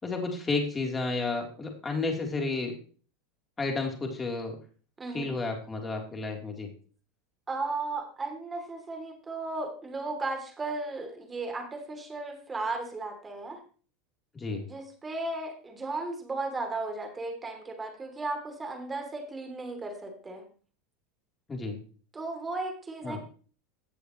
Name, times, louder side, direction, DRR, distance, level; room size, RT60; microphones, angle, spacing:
voice 1, 0.0-2.7 3.6-4.6 5.1-6.7 14.3-14.6 21.5-21.8 23.0-23.2, left 3 dB, 20° left, 1 dB, 3.4 m, -31 dB
voice 2, 5.0-5.3 7.5-13.6 14.7-20.4 22.1-23.2, right 3 dB, 20° right, 4 dB, 2.9 m, -35 dB
17.5 x 6.9 x 3.1 m, 0.41 s
hypercardioid pair, 100°, 0 cm